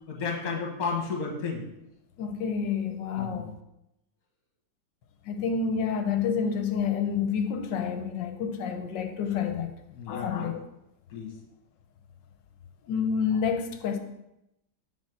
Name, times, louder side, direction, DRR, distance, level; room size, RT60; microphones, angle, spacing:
voice 1, 0.1-1.6 3.2-3.5 9.9-10.5 11.1-11.3, left 5 dB, 55° left, 1.8 m, -32 dB
voice 2, 2.2-3.5 5.3-9.7 10.1-10.6 12.9-14.0, left 6 dB, 80° left, 1.4 m, -28 dB
6.4 x 4.1 x 6.2 m
omnidirectional pair, 1.9 m